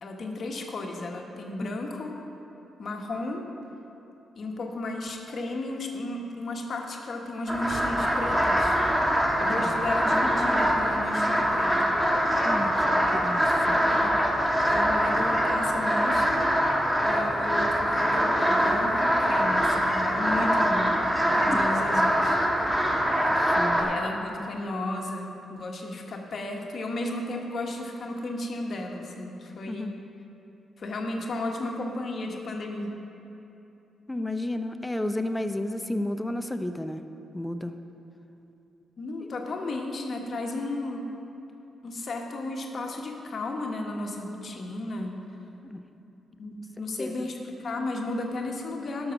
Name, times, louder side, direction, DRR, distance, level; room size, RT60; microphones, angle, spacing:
voice 1, 0.0-2.2 2.8-3.4 4.3-8.8 9.4-12.0 13.8-14.4 14.6-16.4 17.0-21.0 21.3-22.4 23.8-29.9 30.8-32.9 39.0-41.1 41.8-45.2 46.4-49.1, left 2 dB, 60° left, 1 dB, 1.4 m, -34 dB
sound 1, 7.5-23.8, equal, 15° right, 2.2 m, -24 dB
voice 2, 9.2-9.9 12.4-13.8 21.5-21.6 23.3-23.9 29.7-29.9 34.1-37.0 37.3-37.8 39.2-39.3 45.6-45.8 47.0-47.3, left 1 dB, 15° left, 8 dB, 0.7 m, -32 dB
12.0 x 6.3 x 6.0 m, 2.9 s
supercardioid pair, 60°, 0 cm